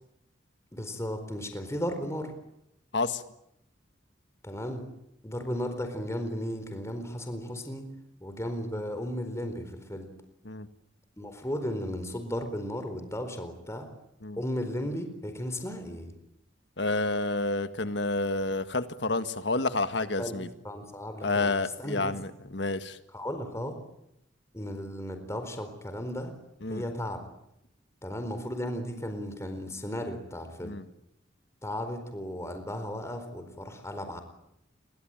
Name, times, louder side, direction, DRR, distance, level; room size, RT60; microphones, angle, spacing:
voice 1, 0.7-2.3 4.4-4.9 5.2-7.9 8.2-10.1 11.2-13.9 14.4-16.2 20.2-22.2 23.1-23.8 24.5-26.3 26.7-27.2 28.0-30.8 31.6-34.2, equal, 15° left, 7 dB, 4.3 m, -35 dB
voice 2, 16.8-20.5 21.2-23.0 26.6-26.8 30.6-30.8, left 3 dB, 65° left, 10 dB, 1.8 m, -29 dB
29.0 x 22.5 x 9.1 m, 0.80 s
head